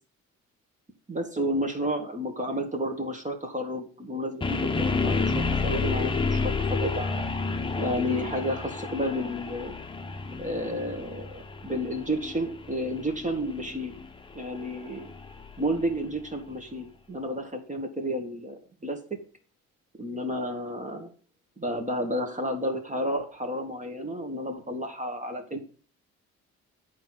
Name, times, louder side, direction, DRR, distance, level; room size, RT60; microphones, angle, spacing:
voice 1, 1.1-7.2 7.8-9.7 10.4-13.9 14.3-15.1 15.6-19.2 20.0-21.1 21.6-25.6, equal, 25° right, 4 dB, 1.9 m, -31 dB
sound 1, 4.4-16.4, left 4 dB, 15° left, 1.0 m, -30 dB
8.8 x 4.8 x 6.0 m, 0.40 s
cardioid pair, 90°, 30 cm